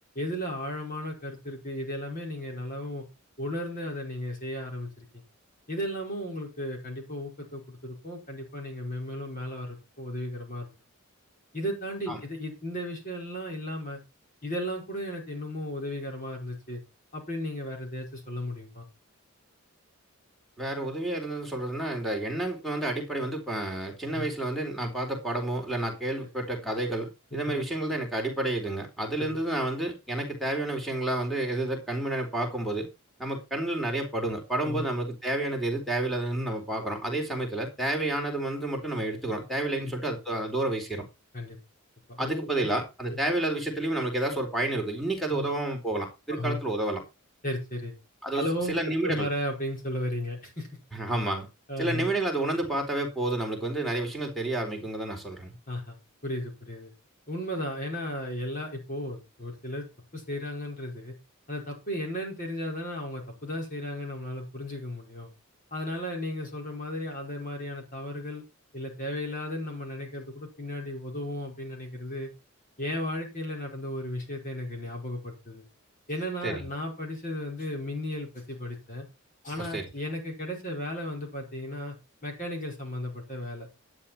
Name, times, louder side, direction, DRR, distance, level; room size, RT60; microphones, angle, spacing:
voice 1, 0.2-3.0 3.4-5.2 5.7-10.7 11.5-14.0 14.4-16.8 17.1-18.9 24.1-24.3 26.2-26.3 27.3-27.6 29.2-29.3 34.6-34.8 36.9-37.0 39.8-39.9 41.3-41.6 42.1-42.5 43.1-43.2 45.3-45.5 46.3-46.6 47.4-47.9 48.3-50.7 51.7-52.1 55.7-56.0 56.2-56.9 57.3-59.9 60.1-61.1 61.5-65.3 65.7-68.4 68.7-72.3 72.8-75.6 76.1-79.1 79.4-81.9 82.2-83.7, left 1 dB, 40° left, 5.1 m, -35 dB
voice 2, 20.6-32.9 33.2-41.1 42.2-47.0 48.2-49.3 50.9-51.5 51.8-55.6 76.4-76.7 79.6-79.9, right 1 dB, ahead, 4.1 m, -30 dB
12.0 x 9.8 x 4.4 m
head